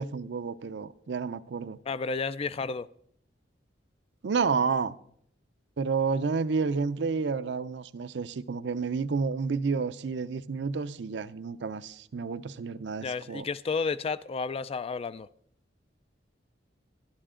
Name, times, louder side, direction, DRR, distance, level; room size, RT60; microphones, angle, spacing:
voice 1, 0.0-1.8 4.2-4.9 5.8-13.5, right 5 dB, 70° right, 0.5 m, -30 dB
voice 2, 1.9-2.9 13.0-15.3, left 4 dB, 35° left, 0.3 m, -31 dB
11.5 x 11.5 x 3.7 m
head